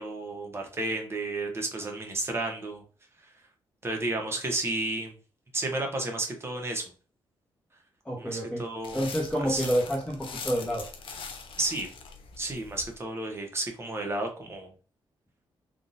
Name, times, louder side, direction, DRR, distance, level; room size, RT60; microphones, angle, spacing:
voice 1, 0.0-2.8 3.8-5.1 5.5-6.9 8.2-9.1 9.5-9.6 11.6-11.9 12.4-14.7, right 2 dB, 25° right, 2 dB, 1.1 m, -32 dB
voice 2, 8.0-8.6 8.9-10.8, equal, 10° left, -4 dB, 1.1 m, -28 dB
sound 1, 8.8-13.0, left 5 dB, 65° left, 0.7 m, -42 dB
3.6 x 2.5 x 2.7 m, 0.38 s
cardioid pair, 85°, 9 cm